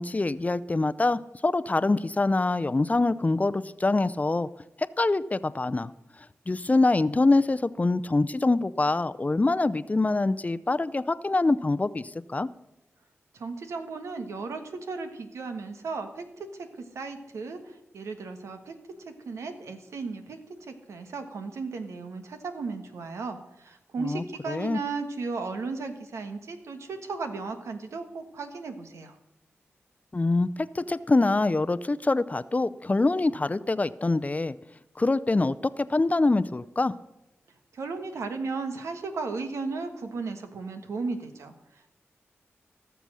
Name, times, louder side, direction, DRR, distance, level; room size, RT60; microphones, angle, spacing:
voice 1, 0.0-4.5 5.0-5.9 6.5-12.5 24.0-24.8 30.1-34.6 35.0-36.9, left 2 dB, 30° left, 14 dB, 0.5 m, -25 dB
voice 2, 13.3-18.8 19.0-29.2 37.7-41.9, right 4 dB, 90° right, 7 dB, 1.3 m, -35 dB
17.0 x 6.9 x 6.3 m, 0.92 s
cardioid pair, 50°, 5 cm